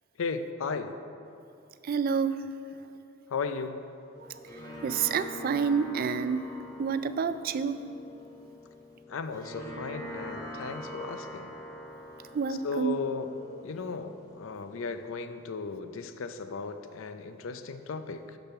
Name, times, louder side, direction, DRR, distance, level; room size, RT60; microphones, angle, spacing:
voice 1, 0.2-1.0 3.3-3.9 9.1-11.5 12.6-13.3 13.6-18.4, left 4 dB, 75° left, 9 dB, 0.5 m, -35 dB
voice 2, 1.8-2.4 4.2-6.4 6.8-7.8 12.3-13.0, right 6 dB, 45° right, 12 dB, 0.3 m, -29 dB
sound 1, 4.1-15.1, equal, 15° left, 1.0 m, -44 dB
6.7 x 6.2 x 5.7 m, 2.7 s
head